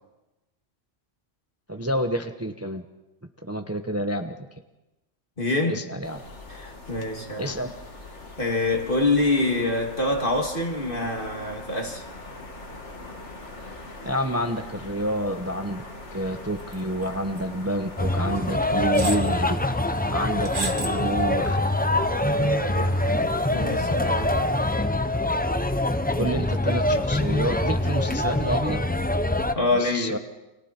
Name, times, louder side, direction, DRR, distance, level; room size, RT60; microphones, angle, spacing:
voice 1, 1.7-2.8 3.4-4.4 5.7-6.2 7.4-7.7 14.0-15.8 16.1-19.6 20.1-21.6 26.1-28.8 29.6-30.2, equal, 15° right, 0.9 m, -28 dB
voice 2, 5.4-5.8 6.5-7.5 8.4-12.0 22.4-23.0 23.5-24.4 29.5-30.2, left 2 dB, 45° left, 2.7 m, -26 dB
sound 1, 6.0-24.7, left 1 dB, 75° left, 2.7 m, -42 dB
sound 2, 16.7-17.1 17.4-17.5 18.4-18.5 18.9-19.3 20.4-21.0 21.4-21.5, right 2 dB, 45° right, 1.6 m, -31 dB
sound 3, 18.0-29.5, left 1 dB, 10° left, 0.6 m, -24 dB
30.0 x 25.5 x 4.4 m
omnidirectional pair, 1.2 m